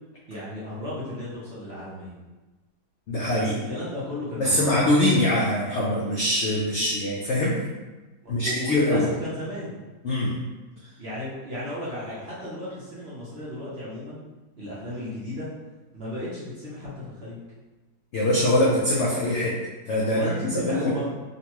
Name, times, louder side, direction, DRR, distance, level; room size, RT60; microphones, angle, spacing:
voice 1, 0.3-2.1 3.3-4.8 8.4-9.8 11.0-14.2 14.6-15.5 15.9-17.4 20.1-21.0, left 1 dB, 50° right, -9 dB, 0.8 m, -34 dB
voice 2, 3.1-3.5 4.4-7.6 8.3-9.1 10.0-10.4 18.1-19.6 19.9-20.9, left 1 dB, 80° left, -5 dB, 0.6 m, -23 dB
3.8 x 2.2 x 2.9 m, 1.2 s
omnidirectional pair, 1.8 m